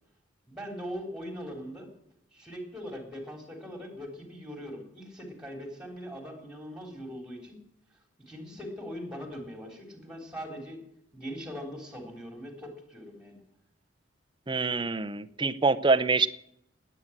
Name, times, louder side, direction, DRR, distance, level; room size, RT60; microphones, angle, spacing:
voice 1, 0.5-1.9 2.3-7.6 8.3-10.8 11.1-13.4, equal, 5° right, 2 dB, 3.7 m, -41 dB
voice 2, 14.5-16.3, right 4 dB, 25° right, 11 dB, 0.6 m, -25 dB
19.5 x 9.0 x 7.4 m, 0.78 s
head